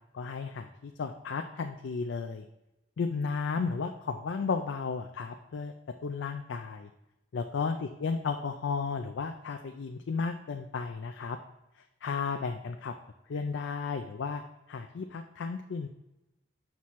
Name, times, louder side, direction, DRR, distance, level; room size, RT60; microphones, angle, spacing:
voice 1, 0.1-2.5 3.0-5.7 6.0-6.9 7.3-11.4 12.0-12.9 13.3-14.4 14.7-15.9, left 5 dB, 80° left, 5 dB, 0.4 m, -33 dB
6.0 x 5.7 x 3.1 m, 0.94 s
head